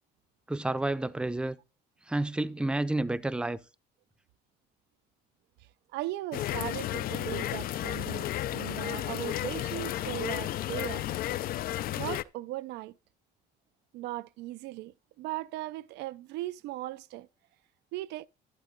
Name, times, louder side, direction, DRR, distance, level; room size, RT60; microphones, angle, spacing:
voice 1, 0.5-1.6 2.1-3.6, right 2 dB, 5° right, 0.6 m, -30 dB
voice 2, 5.9-11.1 12.0-12.9 13.9-17.3 17.9-18.3, right 17 dB, 85° right, 0.5 m, -38 dB
sound 1, 6.3-12.2, left 13 dB, 60° left, 0.5 m, -33 dB
12.0 x 8.1 x 3.9 m
cardioid pair, 110°, 17 cm